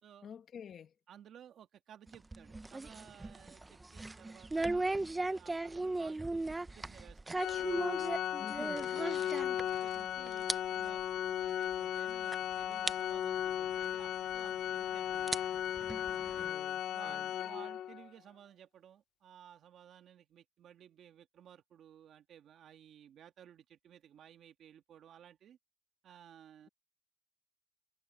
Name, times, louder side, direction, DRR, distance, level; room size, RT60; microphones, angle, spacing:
voice 1, 0.2-0.9 8.4-8.9 16.4-17.3, left 7 dB, 60° left, 1.7 m, -49 dB
voice 2, 1.1-7.5 8.5-8.7 9.1-15.4 16.3-25.6 26.0-26.7, right 9 dB, 70° right, 2.0 m, -57 dB
sound 1, 2.1-10.0 10.3-10.6 10.9-11.0 11.7-11.8 12.3-12.4 12.9-13.0 14.3-14.4 15.1-16.5, right 2 dB, 20° right, 0.7 m, -37 dB
Organ, 7.4-18.1, left 10 dB, 80° left, 0.6 m, -36 dB
cardioid pair, 90°, 0 cm